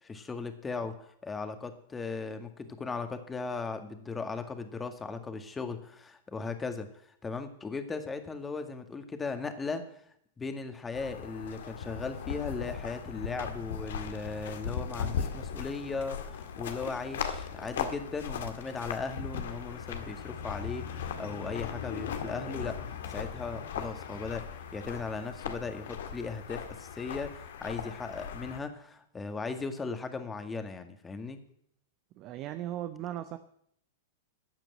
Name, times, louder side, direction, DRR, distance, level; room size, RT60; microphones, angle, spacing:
voice 1, 0.0-9.8 10.4-24.4 24.7-31.4, left 4 dB, 15° left, 7 dB, 2.0 m, -37 dB
sound 1, 10.9-28.6, left 7 dB, 60° left, 1.8 m, -38 dB
voice 2, 32.2-33.4, right 12 dB, 40° right, 10 dB, 0.9 m, -37 dB
14.0 x 9.0 x 8.9 m, 0.69 s
figure-of-eight pair, 95°, 0 cm